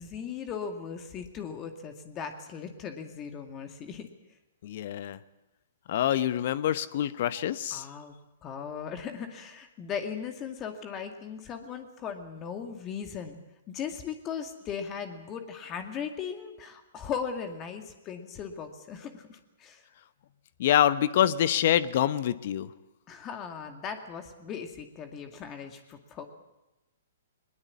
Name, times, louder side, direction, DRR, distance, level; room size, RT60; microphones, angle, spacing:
voice 1, 0.0-4.1 7.7-8.1 8.4-13.4 13.7-19.8 23.1-26.2, left 7 dB, 25° left, 7 dB, 2.2 m, -38 dB
voice 2, 4.6-5.2 5.9-7.8 20.6-22.7, left 11 dB, 55° left, 16 dB, 1.0 m, -26 dB
20.5 x 20.0 x 8.4 m, 1.0 s
hypercardioid pair, 125°, 0 cm